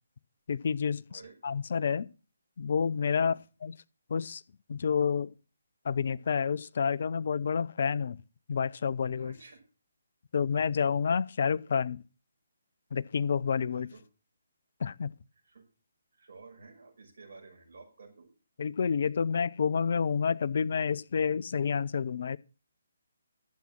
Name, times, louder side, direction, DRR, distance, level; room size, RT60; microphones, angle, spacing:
voice 1, 0.5-2.1 2.6-3.3 3.6-3.7 4.1-4.4 4.7-5.3 5.8-8.2 8.5-9.3 10.3-12.0 12.9-13.9 14.8-15.1 18.6-22.4, left 6 dB, 50° left, 0.5 m, -29 dB
voice 2, 9.2-9.6 13.7-14.0 15.4-15.6 16.1-18.3, right 4 dB, 55° right, 5.6 m, -52 dB
11.5 x 7.5 x 6.1 m
figure-of-eight pair, 140°, 0 cm